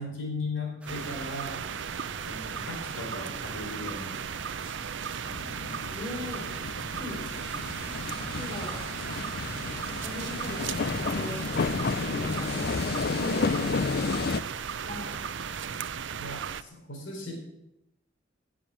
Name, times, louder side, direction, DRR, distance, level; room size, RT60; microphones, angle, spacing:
voice 1, 0.0-1.6 2.3-4.3 4.6-4.9 16.2-17.3, left 2 dB, 70° left, 1 dB, 4.4 m, -37 dB
sound 1, 0.8-15.6, right 2 dB, 5° right, 1.8 m, -49 dB
sound 2, 0.9-16.6, right 7 dB, 65° right, 0.6 m, -36 dB
sound 3, 5.3-14.4, left 4 dB, 50° left, 0.5 m, -32 dB
voice 2, 5.9-6.5 7.0-7.2 8.3-8.8 9.9-11.4 12.0-12.7 13.1-14.1 14.8-15.1, left 1 dB, 20° left, -1 dB, 4.7 m, -39 dB
18.0 x 7.4 x 7.2 m, 0.87 s
head